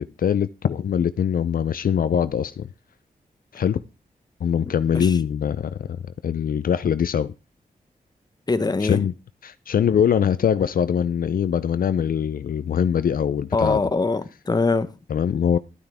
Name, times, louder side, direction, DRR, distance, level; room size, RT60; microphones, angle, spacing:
voice 1, 0.0-2.7 3.5-3.8 4.4-5.8 6.2-7.3 8.8-9.1 9.4-13.8 15.1-15.6, left 8 dB, 70° left, 0.4 m, -22 dB
voice 2, 4.6-5.2 8.5-9.0 13.5-14.9, left 3 dB, 25° left, 0.8 m, -23 dB
12.0 x 9.3 x 3.5 m
wide cardioid pair, 110°, 15 cm